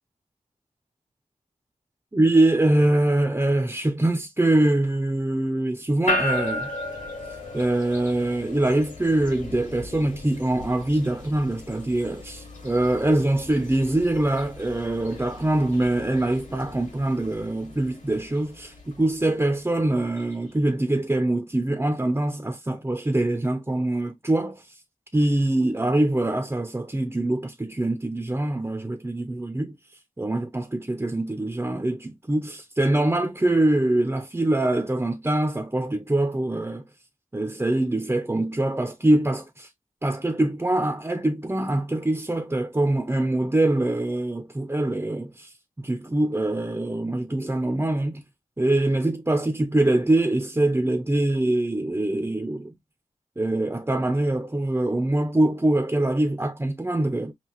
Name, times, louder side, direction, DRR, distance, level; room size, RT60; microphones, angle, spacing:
voice 1, 2.1-6.7 7.5-24.8 25.1-29.8 30.2-36.8 37.3-39.7 40.0-48.2 48.6-52.7 53.4-57.3, right 1 dB, 20° right, 0.7 m, -24 dB
sound 1, 6.1-20.3, left 1 dB, 65° left, 2.7 m, -36 dB
5.7 x 2.4 x 2.9 m
cardioid pair, 55°, 14 cm